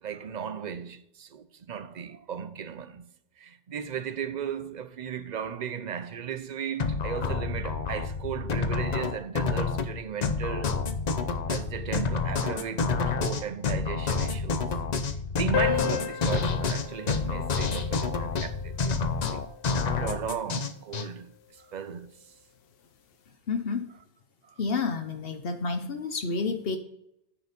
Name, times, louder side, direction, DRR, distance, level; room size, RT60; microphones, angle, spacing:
voice 1, 0.0-3.1 3.4-10.8 11.5-14.7 15.4-19.4 20.0-22.2 24.4-24.5, right 8 dB, 50° right, 0.7 m, -36 dB
sound 1, 6.8-21.1, left 4 dB, 45° left, 0.7 m, -28 dB
sound 2, 15.5-20.5, left 12 dB, 85° left, 0.9 m, -35 dB
voice 2, 23.5-23.9 24.6-26.8, left 4 dB, 65° left, 1.1 m, -30 dB
9.8 x 5.0 x 5.1 m
omnidirectional pair, 1.1 m